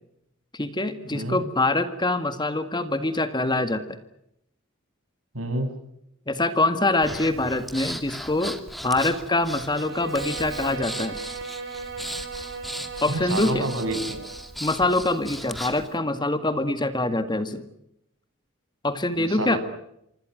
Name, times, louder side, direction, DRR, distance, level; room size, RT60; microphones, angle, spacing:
voice 1, 0.5-3.8 6.3-8.6 8.8-11.2 13.0-13.6 14.6-17.6 18.8-19.6, left 2 dB, 20° left, 10 dB, 1.9 m, -24 dB
voice 2, 1.1-1.4 5.3-5.7 13.1-14.2 19.2-19.6, right 1 dB, 75° right, 6 dB, 7.4 m, -28 dB
Breathing, 7.0-15.9, equal, ahead, 2.4 m, -37 dB
Bowed string instrument, 9.6-14.5, right 4 dB, 55° right, 5.8 m, -36 dB
26.5 x 26.0 x 6.4 m, 0.79 s
head